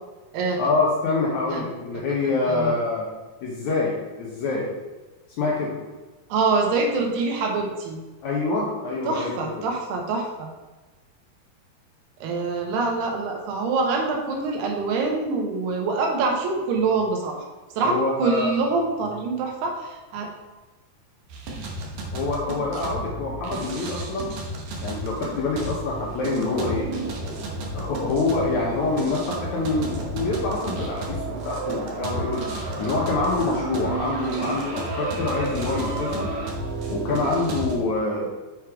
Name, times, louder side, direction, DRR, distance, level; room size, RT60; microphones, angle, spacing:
voice 1, 0.6-3.0 3.4-4.7 5.4-5.7 8.2-9.3 17.9-18.5 22.1-24.3 24.8-26.9 27.7-36.3 36.9-38.3, left 3 dB, 70° left, -4 dB, 1.8 m, -26 dB
voice 2, 2.2-2.7 6.3-8.0 9.1-10.5 12.2-17.4 17.8-20.3, right 3 dB, 90° right, 1 dB, 3.1 m, -25 dB
sound 1, 21.3-37.8, right 2 dB, 75° right, 1.6 m, -31 dB
6.5 x 4.9 x 4.6 m, 1.2 s
omnidirectional pair, 4.5 m